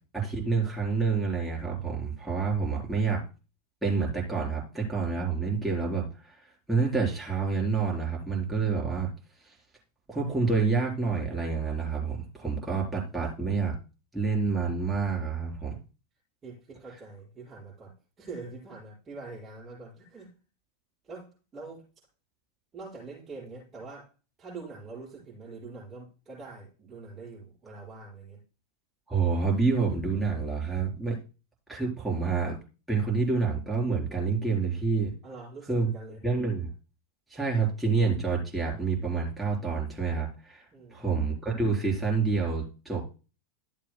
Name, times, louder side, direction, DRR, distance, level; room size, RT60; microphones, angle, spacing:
voice 1, 0.1-3.2 3.8-9.1 9.4-9.6 10.1-13.7 14.1-15.8 29.1-31.2 31.7-32.6 32.9-35.1 35.7-35.9 36.2-36.7 37.3-43.2, right 4 dB, 5° right, 4.0 m, -28 dB
voice 2, 16.4-20.3 21.0-21.8 22.7-24.1 24.4-28.4 35.2-36.2 40.7-41.0, right 3 dB, 25° right, 5.8 m, -44 dB
14.5 x 7.4 x 2.2 m
figure-of-eight pair, 90°, 0 cm